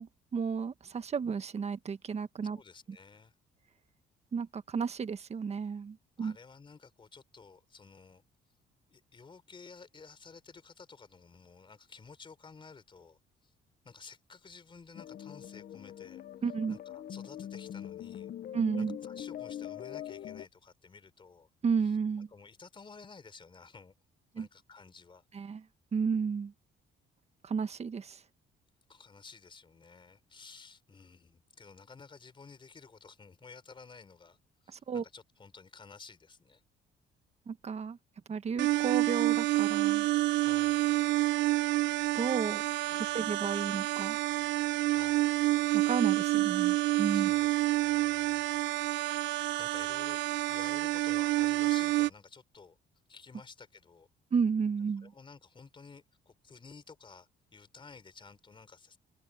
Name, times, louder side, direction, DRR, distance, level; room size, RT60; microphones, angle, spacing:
voice 1, 0.0-2.6 4.3-6.3 16.4-16.8 18.5-19.0 21.6-22.3 24.3-24.5 25.3-25.6 25.9-26.5 27.4-28.2 34.7-35.0 37.5-38.0 38.3-40.1 42.1-42.6 42.9-44.2 45.7-47.3 54.3-55.1, right 6 dB, 35° right, 1.4 m, -32 dB
voice 2, 2.5-3.3 6.2-8.2 8.9-13.5 13.8-16.2 16.7-18.3 18.8-21.5 22.3-23.9 24.3-25.2 28.9-34.4 34.6-36.6 40.4-40.8 42.9-43.3 44.9-45.3 47.1-48.5 49.6-52.8 53.1-54.1 55.0-59.0, left 4 dB, 25° left, 3.8 m, -53 dB
sound 1, 14.9-20.5, left 10 dB, 50° left, 0.7 m, -43 dB
sound 2, 38.6-52.1, right 17 dB, 85° right, 0.5 m, -28 dB
cardioid pair, 120°, 19 cm